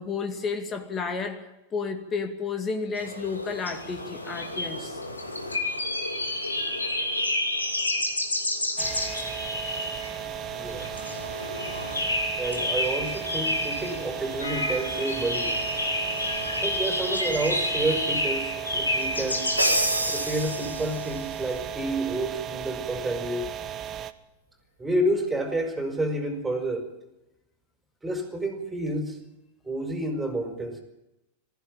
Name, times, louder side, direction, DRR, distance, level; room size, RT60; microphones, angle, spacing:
voice 1, 0.0-5.0, left 5 dB, 25° left, 6 dB, 2.3 m, -32 dB
sound 1, 3.0-19.8, left 1 dB, 80° left, 2.5 m, -30 dB
sound 2, 8.8-24.1, right 10 dB, 25° right, 1.1 m, -36 dB
voice 2, 10.5-10.9 12.4-15.6 16.6-19.5 20.1-23.5 24.8-26.8 28.0-29.2 29.6-30.8, right 1 dB, 10° right, 4 dB, 5.0 m, -29 dB
Crash cymbal, 19.6-21.2, right 1 dB, 85° right, 2.6 m, -27 dB
19.5 x 15.0 x 9.0 m, 0.95 s
figure-of-eight pair, 90°, 0 cm